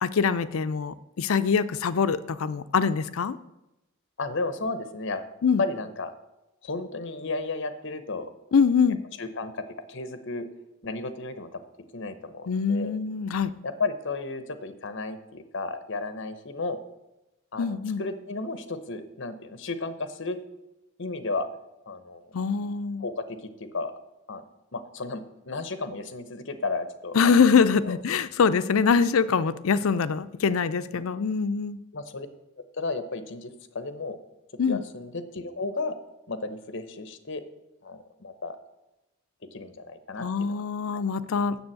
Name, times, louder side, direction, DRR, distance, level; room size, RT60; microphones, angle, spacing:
voice 1, 0.0-3.4 5.4-5.6 8.5-9.0 12.5-13.5 17.6-18.0 22.3-23.0 27.1-31.8 34.6-34.8 40.2-41.6, left 5 dB, 85° left, 13 dB, 0.5 m, -24 dB
voice 2, 4.2-5.3 5.6-6.1 6.6-8.3 9.2-10.5 10.8-11.6 11.9-12.9 13.6-16.8 17.5-20.4 21.0-21.5 21.9-22.2 23.0-23.9 24.3-24.4 24.7-27.5 27.8-27.9 30.9-31.0 31.9-32.3 32.8-34.2 34.7-36.0 36.3-37.4 37.8-38.6 39.5-40.6 40.9-41.0, left 3 dB, 60° left, 11 dB, 0.9 m, -33 dB
7.1 x 6.9 x 7.7 m, 0.94 s
head